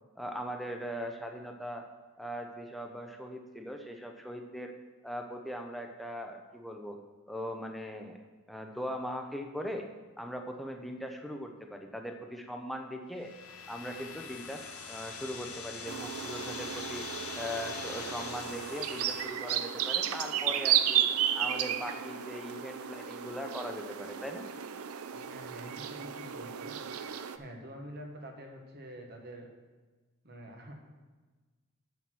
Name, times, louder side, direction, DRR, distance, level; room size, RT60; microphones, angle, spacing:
voice 1, 0.2-1.9 2.2-4.7 5.0-7.0 7.3-8.2 8.5-9.9 10.2-13.3 13.7-17.0 17.3-21.1 21.3-24.5, equal, ahead, 3 dB, 0.7 m, -40 dB
sound 1, 13.1-19.2, left 5 dB, 85° left, 1.4 m, -43 dB
sound 2, 15.9-27.4, right 10 dB, 85° right, 0.6 m, -33 dB
voice 2, 25.1-26.8 27.4-29.5 30.2-30.8, right 1 dB, 45° right, 2 dB, 1.5 m, -46 dB
8.0 x 7.1 x 6.1 m, 1.3 s
head